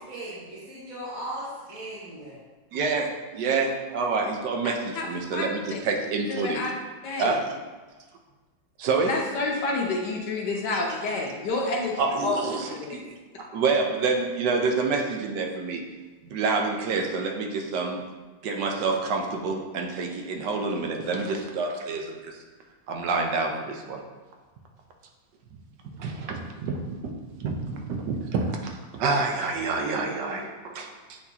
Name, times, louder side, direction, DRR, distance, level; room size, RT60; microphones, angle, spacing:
voice 1, 0.1-2.3, right 1 dB, 50° right, -10 dB, 1.6 m, -37 dB
voice 2, 2.7-6.6 7.2-7.4 8.8-9.1 12.0-15.8 16.2-18.0 18.4-22.4 22.9-24.0 26.0-31.2, right 4 dB, 70° right, 2 dB, 1.3 m, -28 dB
voice 3, 5.3-5.8 6.3-6.7 7.0-7.3 9.1-11.9 12.2-12.4 12.8-13.0, left 3 dB, 65° left, -2 dB, 1.4 m, -28 dB
8.1 x 4.3 x 2.8 m, 1.3 s
omnidirectional pair, 2.1 m